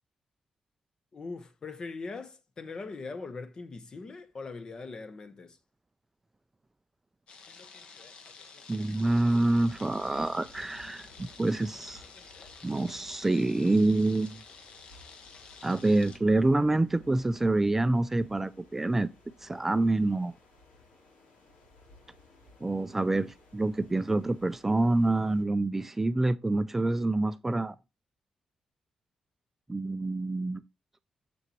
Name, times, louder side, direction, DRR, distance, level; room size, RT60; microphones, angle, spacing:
voice 1, 1.1-5.6, left 4 dB, 40° left, 1.0 m, -41 dB
sound 1, 7.3-16.2, left 5 dB, 60° left, 1.3 m, -51 dB
voice 2, 8.7-12.0 12.6-14.4 15.6-19.1 19.4-20.3 22.6-27.8 29.7-30.6, right 2 dB, 15° right, 0.4 m, -27 dB
sound 2, 9.0-25.4, left 2 dB, 90° left, 3.3 m, -58 dB
7.0 x 6.5 x 3.0 m
cardioid pair, 105°, 2 cm